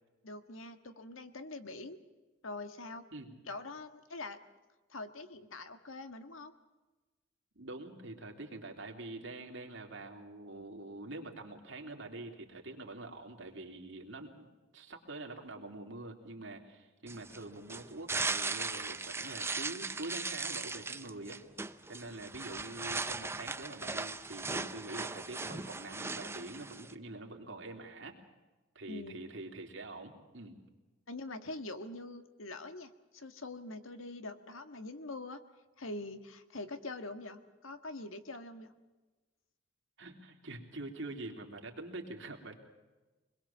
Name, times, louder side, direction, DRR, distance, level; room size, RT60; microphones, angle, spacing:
voice 1, 0.2-2.0 2.4-3.0 3.5-4.4 4.9-6.5 28.8-29.3 31.1-35.4 35.8-38.7, left 2 dB, 90° left, 8 dB, 1.7 m, -44 dB
voice 2, 7.5-14.5 14.7-21.4 21.9-28.1 28.7-30.6 40.0-42.6, right 2 dB, 65° right, 2 dB, 3.4 m, -45 dB
sound 1, 17.1-26.9, right 3 dB, 15° right, 0.7 m, -38 dB
26.0 x 21.0 x 7.4 m, 1.2 s
head